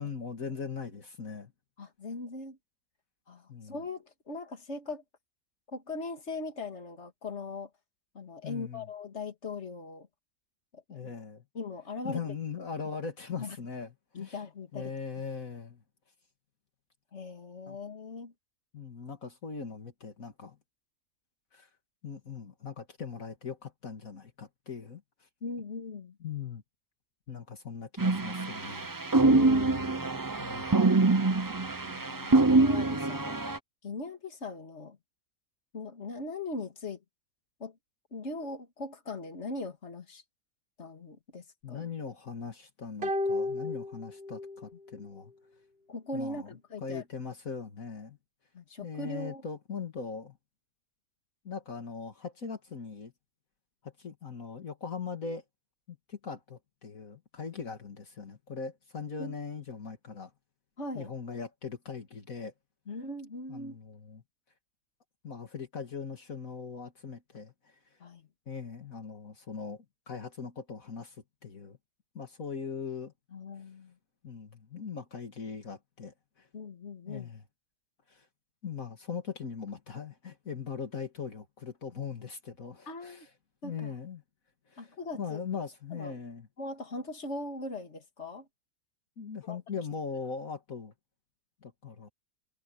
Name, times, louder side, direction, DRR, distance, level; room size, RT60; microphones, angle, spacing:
voice 1, 0.0-1.5 3.5-3.7 8.4-8.9 10.9-11.4 12.0-13.9 14.2-14.4 14.7-15.8 17.7-17.8 18.7-20.6 21.5-21.7 22.0-25.3 26.2-26.6 27.3-28.9 30.4-30.7 41.6-45.3 46.1-46.5 46.8-48.2 48.8-50.4 51.4-53.1 53.8-55.4 55.9-60.3 60.9-62.5 63.5-64.2 65.2-68.0 68.5-71.2 71.4-71.8 72.1-73.1 74.2-76.5 77.1-77.4 78.1-78.3 78.6-83.3 83.6-84.2 84.7-86.5 89.2-90.9 91.6-92.1, left 6 dB, 70° left, 2.5 m, -40 dB
voice 2, 1.8-2.6 3.3-5.0 5.7-7.7 8.1-10.1 10.7-11.1 11.5-12.3 13.4-13.6 14.1-14.9 17.1-18.3 25.4-26.2 29.2-30.1 30.9-31.3 31.9-33.4 33.8-35.0 35.7-37.0 37.6-37.8 38.1-40.2 40.8-41.9 45.9-47.0 48.5-49.4 59.2-59.3 60.8-61.1 62.9-63.8 68.0-68.3 73.3-73.9 76.5-77.3 82.9-83.3 83.6-83.9 84.8-85.4 85.9-86.2 86.6-88.5 89.4-89.6, left 3 dB, 50° left, 2.6 m, -40 dB
sound 1, 28.0-33.6, right 3 dB, 25° right, 0.5 m, -25 dB
sound 2, 43.0-44.7 44.9-45.0, left 2 dB, 45° right, 1.7 m, -33 dB
omnidirectional pair, 1.5 m